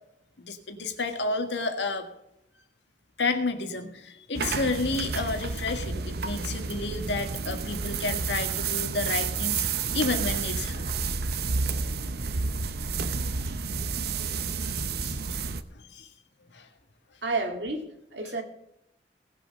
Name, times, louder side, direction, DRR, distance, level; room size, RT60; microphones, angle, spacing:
voice 1, 0.4-2.1 3.2-10.9 14.6-15.2 15.7-16.1 16.5-16.7, left 3 dB, 85° left, 5 dB, 1.7 m, -31 dB
sound 1, 4.4-15.6, right 5 dB, 60° right, 0.7 m, -30 dB
voice 2, 17.2-18.4, right 3 dB, 80° right, 4 dB, 2.1 m, -31 dB
18.5 x 6.9 x 5.3 m, 0.80 s
head